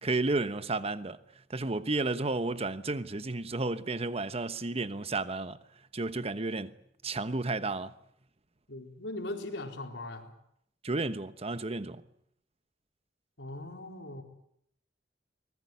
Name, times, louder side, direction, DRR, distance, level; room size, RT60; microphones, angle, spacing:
voice 1, 0.0-1.2 1.5-5.6 5.9-6.7 7.0-7.9 10.8-12.0, right 2 dB, 35° right, 1.1 m, -32 dB
voice 2, 8.7-10.3 13.4-14.2, left 2 dB, 85° left, 4.5 m, -39 dB
25.0 x 20.0 x 9.5 m
head